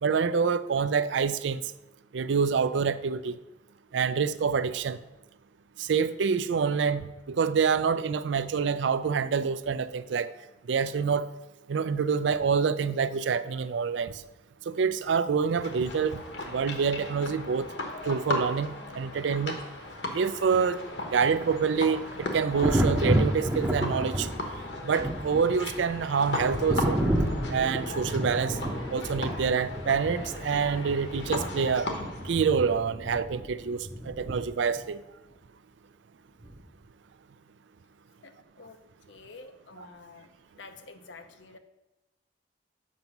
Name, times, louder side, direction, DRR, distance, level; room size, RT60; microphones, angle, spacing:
voice 1, 0.0-1.6 2.1-3.4 3.9-5.0 5.8-10.3 10.7-11.3 11.7-14.1 14.7-17.7 18.0-19.6 20.1-20.8 21.1-24.3 24.8-27.0 27.5-28.6 28.9-31.9 32.3-35.0 39.8-39.9, right 6 dB, 75° right, 0.4 m, -27 dB
sound 1, 15.5-32.8, left 2 dB, 65° left, 1.2 m, -37 dB
Thunder, 21.1-34.8 36.4-36.6, right 1 dB, 10° right, 0.6 m, -31 dB
voice 2, 38.2-38.8 39.1-40.3 40.6-41.6, left 3 dB, 80° left, 0.7 m, -48 dB
7.5 x 5.8 x 5.3 m
head